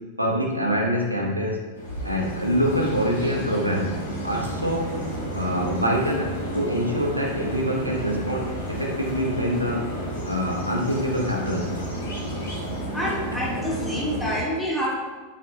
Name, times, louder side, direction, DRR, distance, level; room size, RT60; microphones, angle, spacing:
voice 1, 0.2-1.6 2.0-3.9 4.2-4.9 5.3-9.9 10.2-11.7, equal, 85° right, -1 dB, 1.0 m, -25 dB
sound 1, 1.7-14.4, equal, 70° left, 2.0 m, -31 dB
voice 2, 12.9-14.9, equal, ahead, -4 dB, 1.3 m, -27 dB
6.1 x 5.8 x 2.9 m, 1.3 s
figure-of-eight pair, 90°, 0 cm